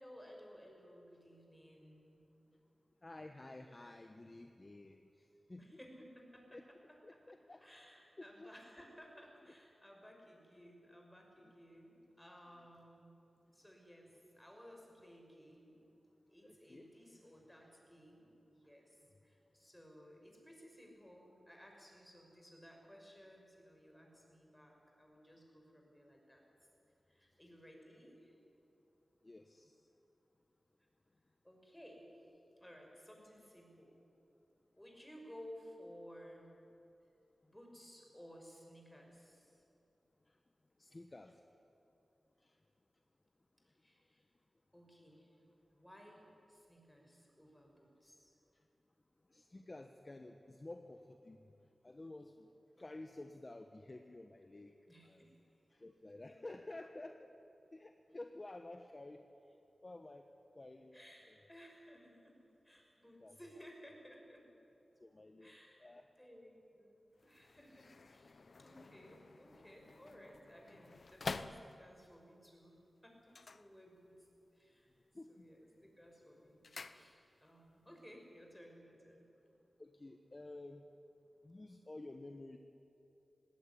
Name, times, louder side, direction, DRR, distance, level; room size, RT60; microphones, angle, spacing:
voice 1, 0.0-2.2 5.5-13.1 13.5-15.8 16.3-26.4 27.1-28.4 31.4-32.1 32.6-34.0 34.7-36.5 37.4-39.6 43.8-44.2 44.7-45.3 45.7-48.3 54.9-55.5 56.3-56.6 60.9-62.4 62.6-64.5 65.4-65.8 66.2-74.2 74.5-74.9 75.3-79.3, equal, 10° left, 1 dB, 5.9 m, -58 dB
voice 2, 3.0-5.8 6.5-6.6 7.0-7.6 8.2-8.5 11.4-11.5 16.4-16.9 29.2-29.9 40.3-40.4 40.8-41.4 42.4-42.6 49.3-51.5 51.8-52.5 52.8-54.7 55.0-55.3 55.7-57.3 57.7-59.6 59.8-60.3 60.5-61.0 63.2-63.4 65.0-65.5 65.8-66.0 75.1-75.5 79.8-80.8 81.4-82.6, left 2 dB, 35° left, 6 dB, 1.1 m, -52 dB
sound 1, 67.2-72.2 73.2-74.4 74.6-75.2 75.5-77.6 77.9-78.0, left 4 dB, 65° left, 0.8 m, -49 dB
19.5 x 17.0 x 10.0 m, 2.7 s
wide cardioid pair, 70°, 0 cm